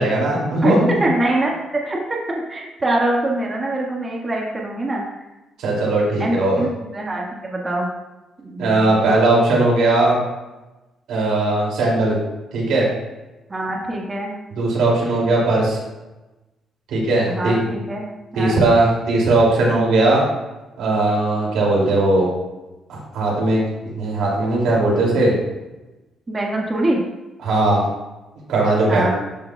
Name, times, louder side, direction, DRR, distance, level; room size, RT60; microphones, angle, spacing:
voice 1, 0.0-0.9 5.6-6.6 8.6-10.2 11.1-12.2 12.5-12.9 14.6-15.8 16.9-17.6 18.4-20.2 20.8-22.3 22.9-25.4 27.4-27.8 28.5-29.1, right 2 dB, 85° right, -4 dB, 2.6 m, -18 dB
voice 2, 1.0-5.0 6.2-7.9 8.4-9.1 13.5-14.3 17.3-18.1 18.3-18.6 26.3-27.0 28.9-29.2, right 1 dB, 25° right, -2 dB, 1.6 m, -24 dB
13.0 x 5.5 x 2.3 m, 1.1 s
cardioid pair, 90°, 0 cm